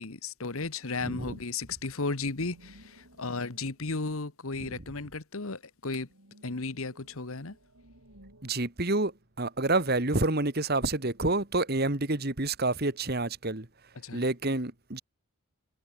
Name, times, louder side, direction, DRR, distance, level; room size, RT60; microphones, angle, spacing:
voice 1, 0.0-6.1 6.4-7.6 13.9-14.2, left 3 dB, 70° left, 1.4 m, -34 dB
voice 2, 1.0-1.4 4.6-4.7 8.4-13.7 14.1-15.0, right 2 dB, 45° right, 1.9 m, -28 dB
sound 1, 1.5-5.1 5.5-9.7 10.0-13.1, right 1 dB, 80° right, 8.0 m, -60 dB
head